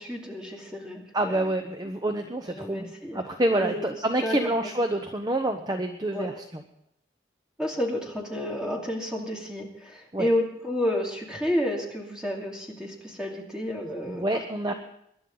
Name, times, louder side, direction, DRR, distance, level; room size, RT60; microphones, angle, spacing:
voice 1, 0.0-1.4 2.5-3.2 3.5-3.9 4.2-4.7 6.1-6.3 7.6-14.2 14.7-14.8, left 1 dB, 5° right, -2 dB, 2.7 m, -30 dB
voice 2, 1.1-6.6 10.1-10.3 14.1-14.7, right 1 dB, 20° right, 6 dB, 0.8 m, -27 dB
24.5 x 11.0 x 3.9 m, 0.74 s
head